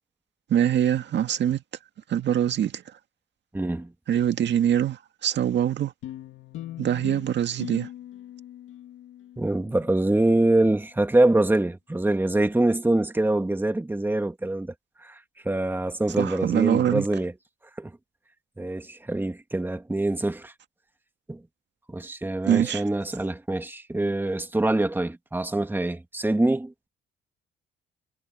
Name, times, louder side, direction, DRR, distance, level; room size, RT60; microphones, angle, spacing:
voice 1, 0.5-1.6 2.1-2.8 4.1-5.9 6.8-7.9 16.2-17.1 22.4-22.8, right 10 dB, 65° right, 1.9 m, -23 dB
voice 2, 3.5-3.9 9.4-14.7 15.0-15.2 15.4-17.3 17.8-17.9 18.6-20.5 21.3-21.4 21.9-26.9, right 2 dB, 10° right, 2.1 m, -24 dB
sound 1, 6.0-10.7, left 12 dB, 85° left, 2.1 m, -41 dB
cardioid pair, 90°, 20 cm